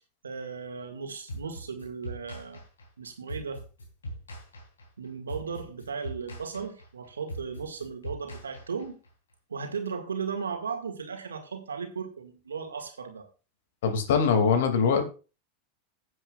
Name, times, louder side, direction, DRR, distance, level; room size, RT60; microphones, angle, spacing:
voice 1, 0.2-2.6 3.0-3.6 5.0-9.0 9.5-13.3, right 5 dB, 85° right, 6 dB, 1.8 m, -36 dB
sound 1, 1.3-9.1, equal, 85° left, 3.3 m, -41 dB
voice 2, 13.8-15.0, left 6 dB, 70° left, 7 dB, 2.3 m, -22 dB
16.5 x 7.9 x 2.4 m, 0.33 s
hypercardioid pair, 90°, 0 cm